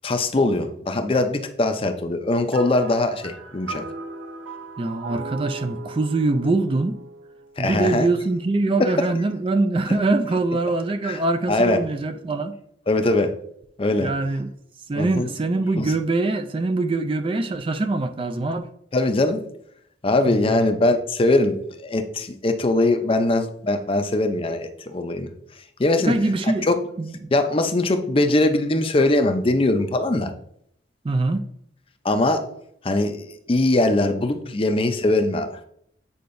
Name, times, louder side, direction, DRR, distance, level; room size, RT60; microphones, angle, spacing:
voice 1, 0.0-3.8 7.6-8.1 8.8-8.9 10.6-10.7 11.0-11.2 11.5-11.8 12.9-13.3 13.8-14.1 15.0-15.3 15.8-15.9 18.9-19.4 20.0-25.3 25.8-26.1 26.4-26.7 27.3-30.3 32.0-32.5 32.8-35.6, left 2 dB, 30° left, 0.5 m, -21 dB
sound 1, 2.5-8.0, right 3 dB, 90° right, 0.7 m, -38 dB
voice 2, 4.8-6.9 7.6-12.5 14.0-14.5 14.9-18.7 20.3-20.6 26.1-26.7 27.0-27.1 31.0-31.4, right 2 dB, 30° right, 0.3 m, -23 dB
8.5 x 4.5 x 2.6 m
head